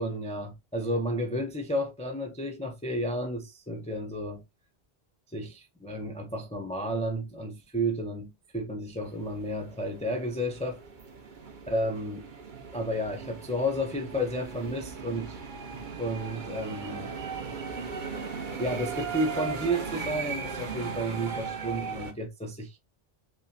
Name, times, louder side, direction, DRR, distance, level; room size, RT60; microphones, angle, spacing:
voice 1, 0.0-4.4 5.3-10.8 11.7-12.3 12.7-15.4 16.0-17.1 18.6-22.8, equal, 10° left, 0.4 m, -32 dB
sound 1, 9.0-22.1, right 5 dB, 55° right, 0.9 m, -38 dB
5.5 x 2.1 x 2.6 m
omnidirectional pair, 1.0 m